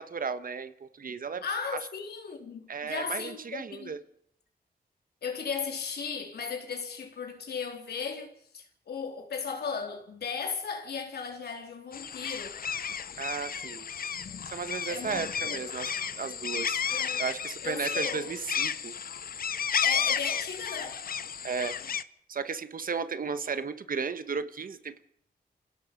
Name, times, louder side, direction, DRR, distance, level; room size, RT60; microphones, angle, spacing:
voice 1, 0.0-1.4 2.7-4.0 13.2-13.9 14.4-15.9 16.1-16.8 17.2-18.9 21.4-21.8 22.3-25.0, right 5 dB, 60° right, 1.5 m, -34 dB
voice 2, 1.4-4.0 5.2-12.6 14.9-15.6 16.9-17.2 17.6-18.3 19.8-21.1, left 5 dB, 90° left, 3.6 m, -36 dB
sound 1, 11.9-22.0, left 7 dB, 65° left, 0.9 m, -32 dB
28.5 x 17.0 x 5.4 m
wide cardioid pair, 85°, 16 cm